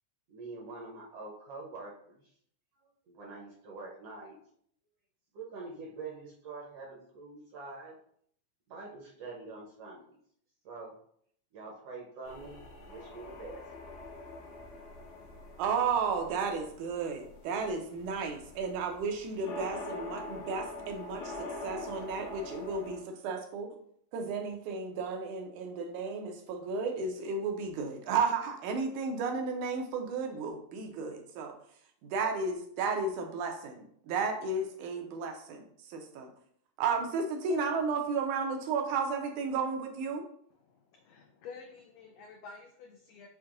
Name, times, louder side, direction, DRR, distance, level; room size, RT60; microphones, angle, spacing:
voice 1, 0.3-2.3 2.8-4.4 5.3-7.9 8.7-10.2 10.6-10.9 11.5-13.9 14.3-14.4, right 3 dB, 75° right, -3 dB, 1.5 m, -45 dB
sound 1, 12.2-23.0, left 2 dB, 70° left, 1.9 m, -44 dB
voice 2, 15.6-23.7 24.1-31.5 32.0-35.6 35.9-36.3 36.8-40.2, right 4 dB, 90° right, 3 dB, 2.1 m, -33 dB
voice 3, 40.6-43.3, left 5 dB, 90° left, 2 dB, 1.4 m, -50 dB
7.1 x 2.6 x 2.5 m, 0.65 s
omnidirectional pair, 3.5 m